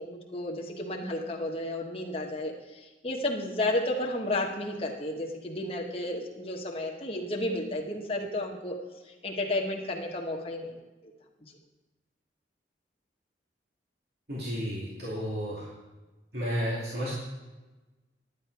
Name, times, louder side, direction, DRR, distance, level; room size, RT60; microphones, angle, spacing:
voice 1, 0.0-8.7 9.1-10.8, left 1 dB, 30° left, 0 dB, 1.4 m, -32 dB
voice 2, 14.3-15.7 16.3-17.2, equal, 65° right, -7 dB, 2.5 m, -32 dB
11.0 x 9.4 x 4.7 m, 1.2 s
head